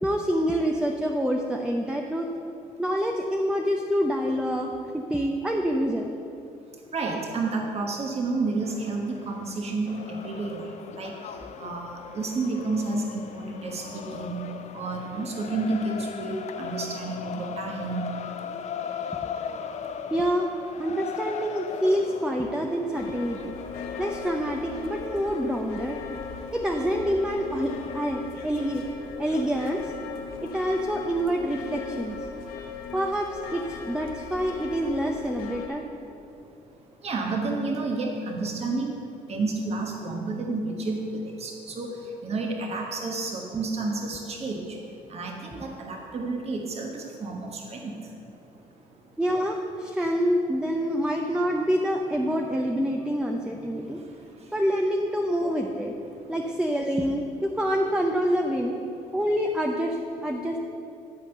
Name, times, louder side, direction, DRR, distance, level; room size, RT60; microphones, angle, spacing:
voice 1, 0.0-2.3 2.8-6.1 20.1-20.5 20.8-23.6 24.0-26.0 26.5-28.8 29.2-29.9 30.4-32.2 32.9-35.9 49.2-54.0 54.5-55.9 56.3-58.8 59.1-60.6, equal, 5° right, 2 dB, 0.7 m, -26 dB
voice 2, 6.9-11.1 11.6-14.4 14.7-18.1 22.6-22.7 37.0-39.0 39.3-44.8 45.1-48.0 56.0-56.4, right 3 dB, 45° right, 1 dB, 1.3 m, -30 dB
sound 1, 8.6-28.1, left 7 dB, 50° left, 0.5 m, -39 dB
sound 2, 22.9-35.7, left 5 dB, 75° left, 1.0 m, -38 dB
12.0 x 4.4 x 6.6 m, 2.7 s
supercardioid pair, 80°, 15 cm